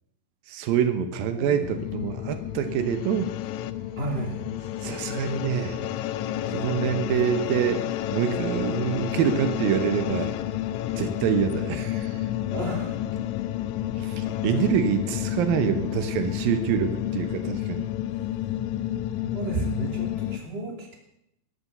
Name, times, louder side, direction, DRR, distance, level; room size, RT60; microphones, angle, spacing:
voice 1, 0.5-3.3 4.8-5.8 6.5-7.8 8.1-10.3 11.0-12.2 14.0-17.9, right 8 dB, 80° right, 9 dB, 2.8 m, -26 dB
voice 2, 1.3-1.8 4.0-4.4 12.5-13.0 19.2-20.9, right 1 dB, 20° right, 1 dB, 2.3 m, -33 dB
sound 1, 1.6-20.4, left 12 dB, 85° left, 1.6 m, -30 dB
13.5 x 10.5 x 6.7 m, 0.77 s
omnidirectional pair, 4.1 m